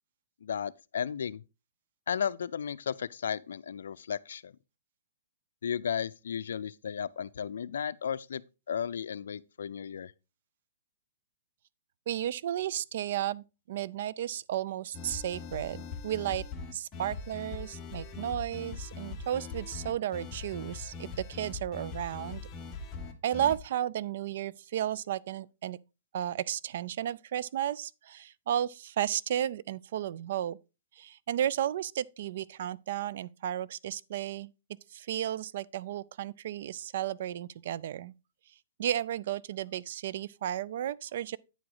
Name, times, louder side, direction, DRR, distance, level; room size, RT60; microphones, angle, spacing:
voice 1, 0.4-1.4 2.1-4.5 5.6-8.4 8.7-10.1, left 7 dB, 80° left, 0.4 m, -34 dB
voice 2, 12.1-16.4 16.7-22.4 23.2-25.8 26.1-30.6 30.9-34.5 34.9-38.1 38.8-41.4, right 11 dB, 55° right, 0.3 m, -33 dB
sound 1, 14.9-23.6, left 4 dB, 20° left, 1.0 m, -41 dB
9.1 x 4.9 x 3.9 m
hypercardioid pair, 150°, 0 cm